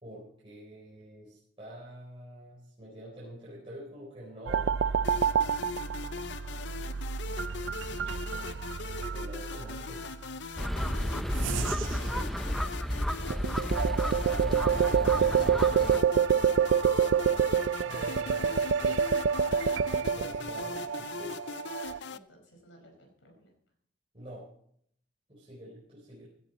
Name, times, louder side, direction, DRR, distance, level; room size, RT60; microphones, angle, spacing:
voice 1, 0.0-4.7 9.1-10.2 12.1-12.4 13.2-13.7 17.8-19.1 20.0-21.5 24.1-24.5 25.3-26.3, equal, 30° right, -6 dB, 4.0 m, -47 dB
sound 1, 4.5-10.1 11.4-12.1 13.3-22.0, right 7 dB, 80° right, 0.4 m, -28 dB
sound 2, 5.0-22.2, left 5 dB, 65° left, 0.6 m, -41 dB
voice 2, 7.2-8.7 15.9-17.2 22.1-23.5, equal, 80° left, 3 dB, 5.1 m, -56 dB
sound 3, 10.6-16.0, equal, ahead, 0.6 m, -32 dB
16.5 x 11.0 x 4.1 m, 0.66 s
head